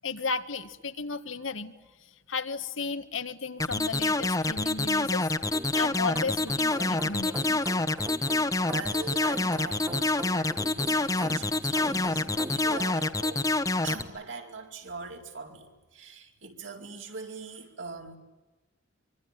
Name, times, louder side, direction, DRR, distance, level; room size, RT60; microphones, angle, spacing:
voice 1, 0.0-1.7 2.3-5.3 5.8-7.6, left 4 dB, 80° left, 9 dB, 1.8 m, -34 dB
sound 1, 3.6-14.0, left 2 dB, 15° left, 1.2 m, -26 dB
sound 2, 5.4-12.9, right 1 dB, 15° right, 1.0 m, -42 dB
voice 2, 8.6-13.5 13.8-18.2, right 4 dB, 70° right, 2 dB, 4.7 m, -42 dB
25.5 x 25.0 x 9.2 m, 1.1 s
head